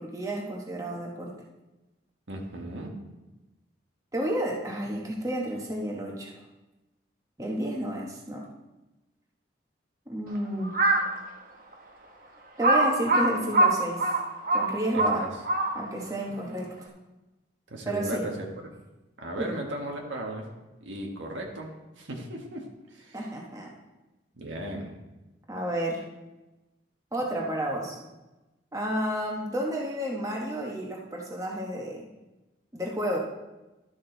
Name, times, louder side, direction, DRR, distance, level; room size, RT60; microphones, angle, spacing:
voice 1, 0.0-1.4 4.1-6.4 7.4-8.4 10.1-10.8 12.6-14.1 14.5-15.3 15.7-16.9 17.9-18.3 19.4-19.6 23.1-23.7 25.5-26.0 27.1-28.0 28.7-32.1 32.7-33.2, right 1 dB, 20° right, -1 dB, 1.2 m, -31 dB
voice 2, 2.3-2.9 14.9-15.3 17.7-18.5 19.2-20.5 20.8-23.2 24.4-24.9, right 1 dB, 85° right, 1 dB, 1.5 m, -36 dB
Crow, 10.6-11.1 11.7-11.8 12.6-16.0, right 2 dB, 50° right, 1.1 m, -23 dB
12.0 x 6.4 x 3.9 m, 1.1 s
head